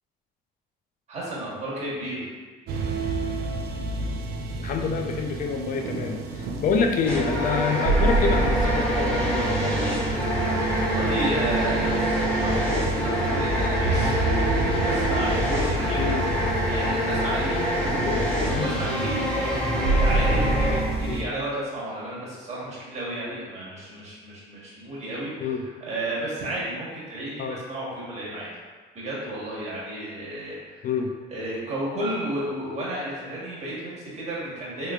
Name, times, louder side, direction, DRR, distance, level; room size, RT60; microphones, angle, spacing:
voice 1, 1.1-2.3 10.8-14.2 14.8-16.1 16.6-17.6 18.6-19.2 19.6-19.7 20.0-25.5 25.8-28.5 28.9-30.7 31.3-34.9, right 1 dB, 40° right, -7 dB, 1.3 m, -32 dB
sound 1, 2.7-21.2, right 3 dB, 70° right, 0.4 m, -28 dB
voice 2, 4.6-9.8 16.0-16.3 18.0-18.7 21.1-21.2 25.4-25.6 27.4-27.6 30.8-31.1, left 5 dB, 50° left, 3 dB, 0.4 m, -27 dB
sound 2, 7.1-20.8, equal, 10° left, 0.8 m, -25 dB
3.1 x 3.1 x 2.4 m, 1.4 s
cardioid pair, 110°, 17 cm